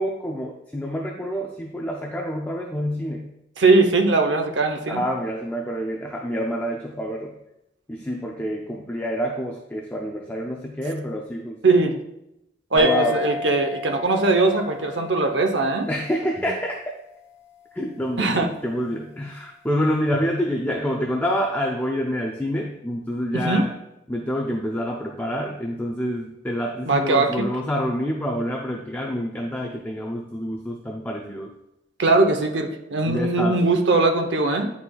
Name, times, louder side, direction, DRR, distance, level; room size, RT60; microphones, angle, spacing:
voice 1, 0.0-3.3 4.9-7.3 7.9-11.8 12.7-13.2 15.9-16.8 17.7-23.7 24.1-31.5 33.1-33.6, equal, 10° left, -1 dB, 0.5 m, -27 dB
voice 2, 3.6-5.0 11.6-12.0 12.7-15.9 18.2-18.5 23.3-23.6 26.8-27.5 32.0-34.7, right 3 dB, 75° right, 5 dB, 0.8 m, -20 dB
sound 1, 12.8-17.7, left 3 dB, 50° left, 1.5 m, -33 dB
10.5 x 4.2 x 2.3 m, 0.84 s
head